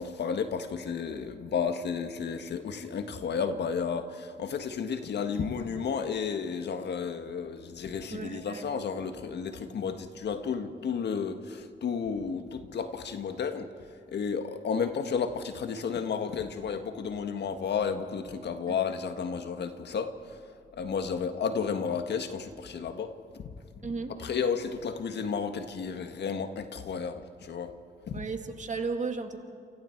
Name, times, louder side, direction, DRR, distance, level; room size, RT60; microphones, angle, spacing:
voice 1, 0.0-13.7 14.1-20.4 20.8-23.4 24.2-27.7 28.1-28.2, left 6 dB, 70° left, 8 dB, 1.6 m, -32 dB
voice 2, 8.1-8.7 18.7-18.8 23.8-24.1 28.1-29.4, right 4 dB, 40° right, 5 dB, 2.3 m, -34 dB
28.5 x 27.5 x 4.6 m, 2.2 s
cardioid pair, 75°, 18 cm